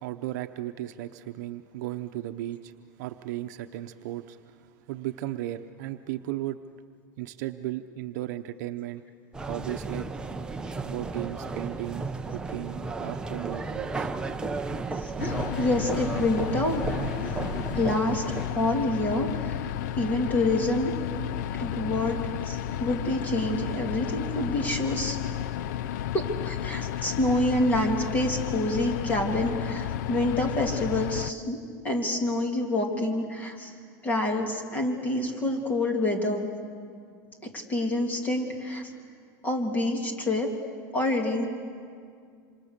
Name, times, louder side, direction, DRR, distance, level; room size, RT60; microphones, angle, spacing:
voice 1, 0.0-2.7 3.0-6.6 7.2-9.0 9.4-10.1 10.8-14.1, right 14 dB, 70° right, 8 dB, 0.8 m, -35 dB
sound 1, 9.3-18.5, right 3 dB, 10° right, 0.8 m, -34 dB
voice 2, 14.9-16.8 17.7-18.2 18.5-19.7 20.0-20.9 21.5-22.2 22.4-25.2 26.1-31.6 31.8-33.7 34.0-36.5 37.5-38.9 39.4-40.5 40.9-41.5, left 1 dB, 15° left, 2 dB, 3.0 m, -27 dB
sound 2, 15.2-31.3, left 11 dB, 75° left, 0.5 m, -32 dB
27.0 x 27.0 x 6.7 m, 2.2 s
supercardioid pair, 155°, 10 cm